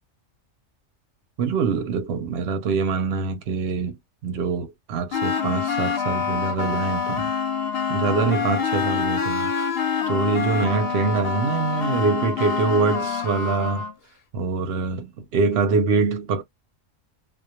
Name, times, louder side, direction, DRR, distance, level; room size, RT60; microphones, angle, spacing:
voice 1, 1.4-4.0 4.2-7.3 7.9-13.9 14.3-15.1 15.3-16.4, right 4 dB, 60° right, 0.8 m, -24 dB
sound 1, 5.1-13.9, left 6 dB, 60° left, 0.7 m, -26 dB
2.2 x 2.0 x 2.9 m
omnidirectional pair, 1.3 m